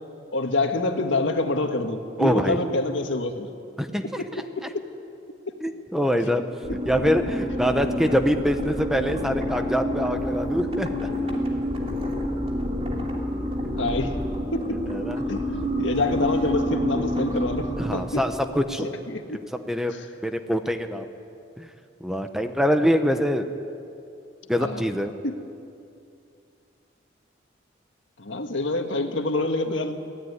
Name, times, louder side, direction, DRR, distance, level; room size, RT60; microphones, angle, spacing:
voice 1, 0.3-3.5 4.2-4.3 13.8-14.2 14.5-14.8 15.3-15.5 15.8-18.2 18.8-19.4 19.9-20.0 24.6-24.8 25.2-25.4 28.2-30.0, left 2 dB, 80° left, 5 dB, 1.8 m, -26 dB
voice 2, 2.2-2.6 3.8-4.2 5.6-6.4 6.9-11.1 14.9-15.2 17.8-18.9 19.6-19.9 20.2-21.1 21.6-21.7 22.0-23.4 24.5-25.1, equal, ahead, 7 dB, 0.9 m, -24 dB
sound 1, 6.6-18.3, equal, 30° right, 2.9 m, -28 dB
23.5 x 17.0 x 9.6 m, 2.6 s
head